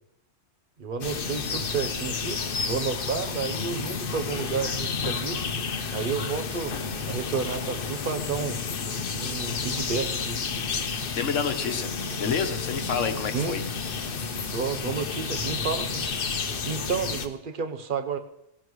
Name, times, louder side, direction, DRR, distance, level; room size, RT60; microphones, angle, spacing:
voice 1, 0.8-5.4 5.9-6.8 7.1-8.6 9.2-10.4 13.3-13.5 14.5-16.1 16.6-18.2, right 5 dB, 45° right, 7 dB, 1.0 m, -31 dB
sound 1, 1.0-17.3, left 5 dB, 50° left, 1.0 m, -31 dB
voice 2, 11.2-13.6, left 6 dB, 80° left, 7 dB, 1.4 m, -29 dB
17.5 x 16.0 x 3.1 m, 0.82 s
omnidirectional pair, 1.3 m